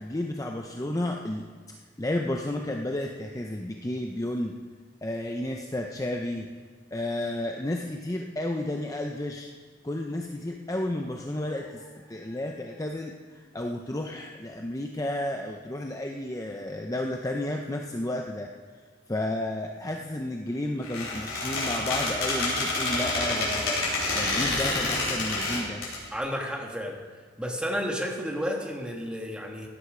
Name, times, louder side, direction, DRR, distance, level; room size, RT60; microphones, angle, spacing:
voice 1, 0.0-1.5 2.0-4.5 5.0-6.5 6.9-9.5 9.8-18.5 19.1-23.8 24.1-25.8, left 1 dB, 15° left, 2 dB, 0.6 m, -32 dB
Squeak, 20.8-26.0, left 2 dB, 75° left, 4.8 m, -28 dB
voice 2, 26.1-27.0 27.4-29.7, equal, 5° right, 1 dB, 1.4 m, -31 dB
16.0 x 9.8 x 5.0 m, 1.5 s
head